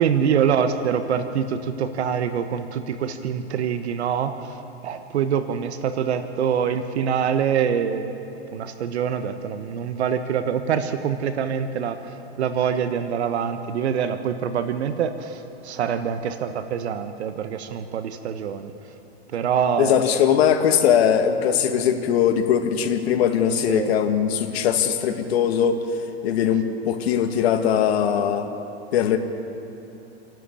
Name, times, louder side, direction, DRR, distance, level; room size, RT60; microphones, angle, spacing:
voice 1, 0.0-8.2 8.5-18.7 19.3-20.0 23.5-23.9, right 7 dB, 85° right, 10 dB, 1.3 m, -25 dB
voice 2, 19.8-25.9 26.2-28.5 28.9-29.2, left 8 dB, 70° left, 6 dB, 2.0 m, -20 dB
28.0 x 12.0 x 8.6 m, 2.9 s
hypercardioid pair, 130°, 32 cm